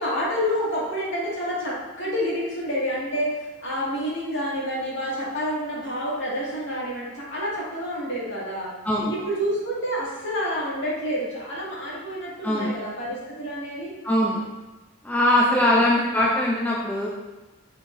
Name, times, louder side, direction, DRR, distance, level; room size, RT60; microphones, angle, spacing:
voice 1, 0.0-3.4 3.6-8.7 9.1-13.9 15.3-15.9, equal, 60° left, -6 dB, 2.0 m, -28 dB
voice 2, 14.0-14.4 15.0-17.1, left 1 dB, 10° left, -4 dB, 0.5 m, -21 dB
6.6 x 5.5 x 2.6 m, 1.1 s
head